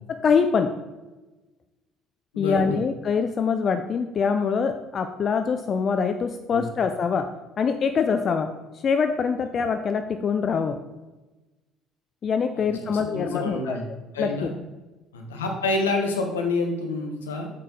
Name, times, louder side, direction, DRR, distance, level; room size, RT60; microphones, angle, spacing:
voice 1, 0.1-0.7 2.4-7.3 7.6-8.5 8.8-10.8 12.2-13.8 14.2-14.3, left 6 dB, 45° left, 8 dB, 0.5 m, -24 dB
voice 2, 2.3-2.7 6.5-6.7 12.5-13.8 14.1-14.6 15.1-17.5, left 2 dB, 80° left, 2 dB, 1.2 m, -28 dB
7.5 x 6.5 x 3.9 m, 1.1 s
figure-of-eight pair, 55°, 0 cm